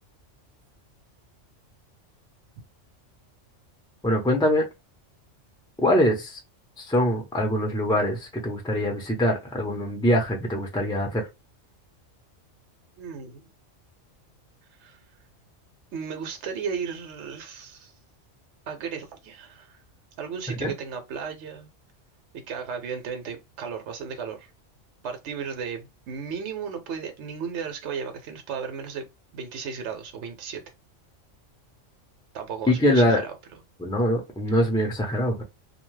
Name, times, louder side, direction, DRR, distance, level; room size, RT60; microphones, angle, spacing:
voice 1, 4.0-4.7 5.8-6.4 6.8-11.3 20.6-20.7 32.7-33.2 33.8-35.4, equal, 5° left, 0.4 m, -23 dB
voice 2, 13.0-13.5 14.7-15.0 15.9-17.9 18.7-19.8 20.2-21.7 22.3-24.5 25.0-29.1 29.3-30.6 32.3-33.6, right 6 dB, 70° right, 0.9 m, -35 dB
2.7 x 2.2 x 3.1 m
omnidirectional pair, 1.3 m